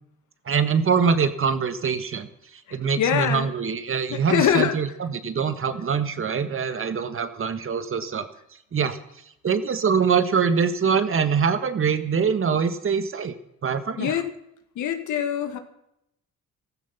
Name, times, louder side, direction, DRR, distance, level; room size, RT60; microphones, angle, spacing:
voice 1, 0.4-2.3 2.7-8.3 8.7-9.0 9.4-13.3 13.6-14.1, right 6 dB, 45° right, 10 dB, 1.7 m, -23 dB
voice 2, 2.7-3.5 4.1-4.8 6.7-6.8 14.0-14.3 14.8-15.6, left 9 dB, 80° left, 8 dB, 1.9 m, -24 dB
15.0 x 13.5 x 5.8 m, 0.79 s
cardioid pair, 90°, 30 cm